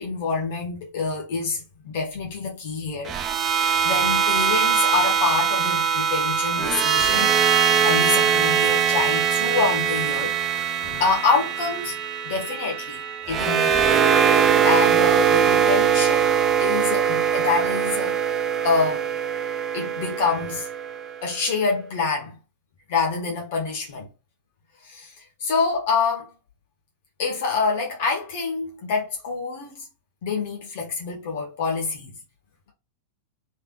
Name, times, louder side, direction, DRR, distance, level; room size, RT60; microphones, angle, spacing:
voice 1, 0.0-3.1 3.5-7.3 7.8-12.0 12.2-14.0 14.4-18.2 18.6-19.1 19.7-20.7 21.2-22.4 22.9-24.1 24.8-26.3 27.2-29.8 30.2-32.1, left 4 dB, 50° left, 1.2 m, -26 dB
sound 1, 3.1-21.2, right 8 dB, 25° right, 0.5 m, -21 dB
3.4 x 3.3 x 2.3 m
figure-of-eight pair, 90°, 0 cm